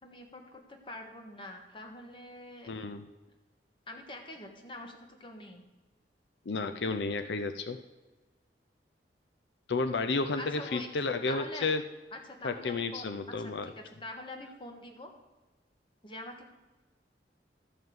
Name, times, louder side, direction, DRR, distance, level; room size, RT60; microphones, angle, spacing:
voice 1, 0.0-2.7 3.9-5.6 10.3-10.9 11.3-11.7 12.1-13.1 13.4-15.1 16.0-16.5, left 1 dB, 30° left, 3 dB, 1.4 m, -45 dB
voice 2, 2.7-3.0 6.5-7.8 9.7-11.8 12.4-13.7, left 3 dB, 80° left, 9 dB, 0.6 m, -32 dB
12.5 x 5.4 x 7.7 m, 1.2 s
head